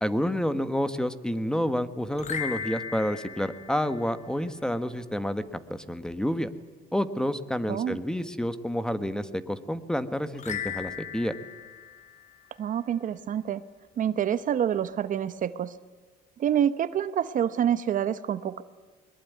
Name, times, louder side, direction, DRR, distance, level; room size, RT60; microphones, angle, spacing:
voice 1, 0.0-5.4 5.7-6.5 6.9-11.3, equal, 5° left, 12 dB, 1.4 m, -29 dB
sound 1, 2.1-4.6 10.4-13.0, left 7 dB, 45° left, 3.5 m, -38 dB
voice 2, 12.6-13.6 14.0-15.7 16.4-18.6, right 9 dB, 50° right, 14 dB, 0.9 m, -27 dB
21.5 x 21.5 x 9.5 m, 1.3 s
cardioid pair, 110°, 17 cm